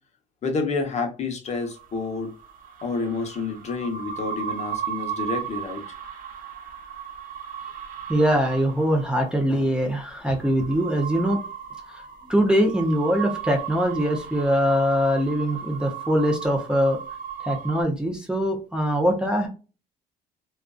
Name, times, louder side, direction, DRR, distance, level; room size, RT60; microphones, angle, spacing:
voice 1, 0.4-2.3 2.8-5.8, left 4 dB, 40° left, 3 dB, 0.8 m, -29 dB
sound 1, 1.5-17.8, right 8 dB, 55° right, 0.7 m, -36 dB
voice 2, 8.1-11.4 11.9-17.0 17.4-19.5, equal, 5° right, 0 dB, 0.6 m, -22 dB
2.4 x 2.3 x 2.3 m, 0.33 s
cardioid pair, 110°, 17 cm